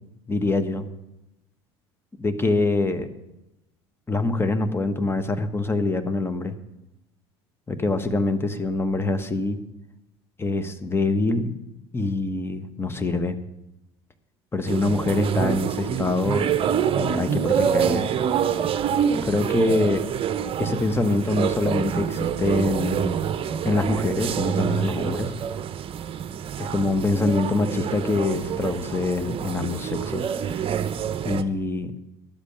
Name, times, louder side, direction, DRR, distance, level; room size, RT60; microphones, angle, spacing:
voice 1, 0.3-0.8 2.2-3.1 4.1-6.5 7.7-9.6 10.4-11.5 11.9-13.4 14.5-16.5 17.0-18.1 19.2-20.0 20.6-23.1 23.6-25.3 26.6-30.3 31.2-31.9, left 3 dB, 15° left, 9 dB, 1.3 m, -24 dB
sound 1, 14.7-31.4, right 8 dB, 40° right, 0.8 m, -26 dB
12.0 x 8.2 x 6.7 m, 0.90 s
hypercardioid pair, 70°, 14 cm